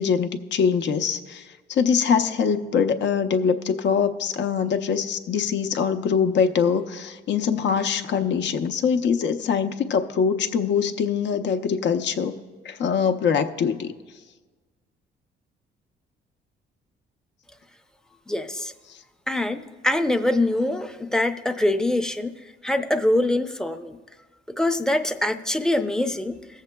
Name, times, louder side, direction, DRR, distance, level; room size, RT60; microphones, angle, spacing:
voice 1, 0.0-12.4 12.6-13.9, left 6 dB, 65° left, 9 dB, 0.6 m, -23 dB
voice 2, 18.3-18.7 19.3-22.3 22.6-24.0 24.6-26.4, left 1 dB, 5° left, 7 dB, 0.5 m, -24 dB
22.0 x 7.3 x 2.2 m, 1.4 s
cardioid pair, 90°, 20 cm